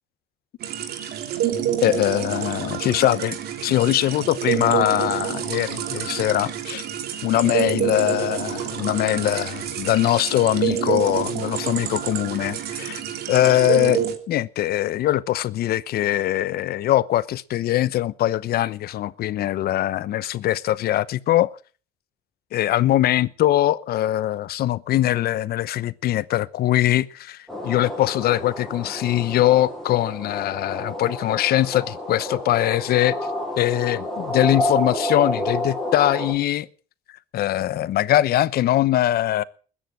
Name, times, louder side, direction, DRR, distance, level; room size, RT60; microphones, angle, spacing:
sound 1, 0.6-14.2, right 10 dB, 70° right, 2.9 m, -28 dB
voice 1, 1.8-6.9 7.2-13.0 13.3-14.0 14.3-21.5 22.5-27.4 27.6-33.1 33.6-36.7 37.3-39.4, left 13 dB, 65° left, 0.9 m, -22 dB
sound 2, 27.5-36.3, left 1 dB, ahead, 7.2 m, -30 dB
21.0 x 10.0 x 6.2 m
cardioid pair, 110°, 17 cm